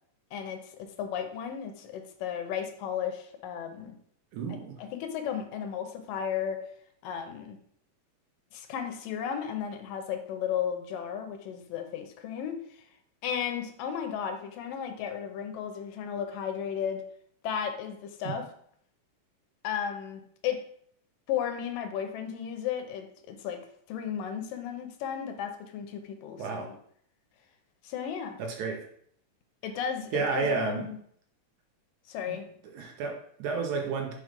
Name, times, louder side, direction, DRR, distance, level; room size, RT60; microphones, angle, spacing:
voice 1, 0.3-4.0 4.8-6.6 7.0-7.6 8.5-12.8 13.2-17.0 17.4-18.5 19.6-20.6 21.3-26.8 27.8-28.4 29.6-31.0 32.1-32.5, left 8 dB, 85° left, 6 dB, 2.5 m, -34 dB
voice 2, 4.3-4.8 26.4-26.7 28.4-28.8 30.1-30.9 32.3-32.4 32.7-34.1, right 4 dB, 70° right, 2 dB, 2.2 m, -31 dB
5.0 x 4.7 x 5.2 m, 0.64 s
omnidirectional pair, 3.8 m